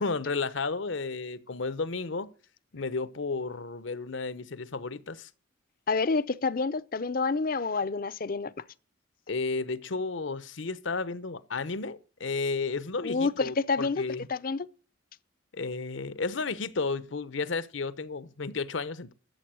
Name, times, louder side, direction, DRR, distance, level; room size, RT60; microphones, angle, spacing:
voice 1, 0.0-2.3 2.7-5.3 9.3-14.3 15.5-19.1, left 4 dB, 70° left, 0.9 m, -33 dB
voice 2, 5.9-8.5 13.0-14.0 14.3-14.7, left 4 dB, 45° left, 0.6 m, -28 dB
13.0 x 7.6 x 6.2 m
head